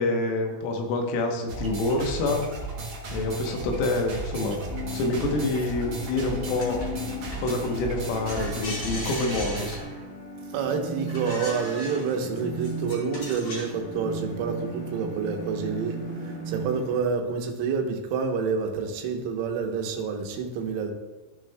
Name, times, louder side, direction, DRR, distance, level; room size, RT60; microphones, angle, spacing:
voice 1, 0.0-2.4 3.1-4.6 4.9-6.8 7.4-9.9, left 2 dB, 85° left, 2 dB, 3.7 m, -27 dB
sound 1, 1.5-9.8, right 3 dB, 50° right, 2.3 m, -35 dB
sound 2, 4.7-17.0, equal, 60° left, 4.5 m, -37 dB
sound 3, 6.6-7.6 8.3-10.1 11.1-13.8, left 1 dB, 40° left, 3.3 m, -38 dB
voice 2, 10.5-20.9, right 5 dB, 85° right, 2 dB, 3.6 m, -28 dB
15.0 x 6.2 x 2.2 m, 1.2 s
omnidirectional pair, 5.8 m